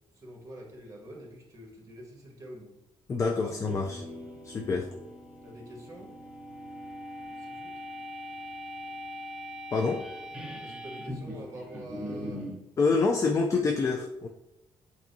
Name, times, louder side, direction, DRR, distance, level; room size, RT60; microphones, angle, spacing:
voice 1, 0.1-2.7 3.3-3.6 5.4-6.1 7.3-7.8 10.6-12.5 13.1-13.2, right 1 dB, 35° right, -1 dB, 1.5 m, -46 dB
voice 2, 3.1-4.0 4.4-4.9 9.7-10.0 12.8-14.3, left 4 dB, 30° left, 2 dB, 0.4 m, -26 dB
sound 1, 3.5-12.6, equal, 10° right, 0.9 m, -41 dB
7.3 x 2.7 x 2.7 m, 0.95 s
cardioid pair, 115°, 10 cm